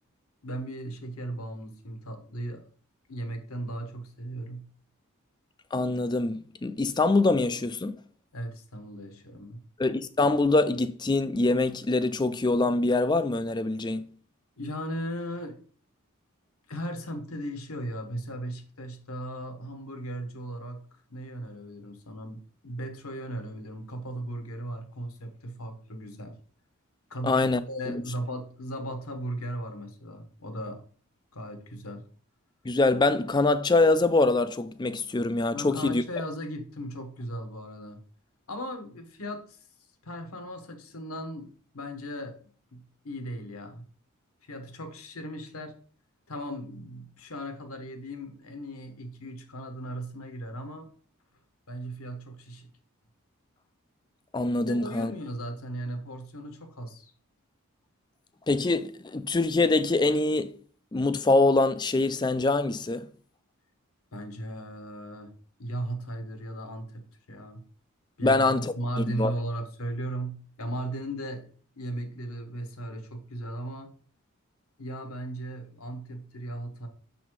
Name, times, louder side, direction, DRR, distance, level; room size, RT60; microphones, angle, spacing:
voice 1, 0.4-2.7 3.1-4.7 8.3-9.6 14.6-15.6 16.7-26.4 27.1-30.8 31.3-32.1 35.5-38.0 38.5-39.6 40.0-43.9 44.4-45.8 46.3-50.9 51.7-52.7 54.6-57.1 64.1-65.3 65.6-67.6 68.2-71.5 71.7-73.9 74.8-76.9, right 1 dB, 75° left, 1.2 m, -37 dB
voice 2, 5.7-8.0 9.8-14.0 27.2-27.6 27.9-28.0 32.6-36.0 54.3-55.1 58.5-60.5 60.9-63.1 68.2-68.7 69.1-69.3, left 2 dB, 20° left, 0.3 m, -24 dB
6.9 x 4.1 x 4.6 m
head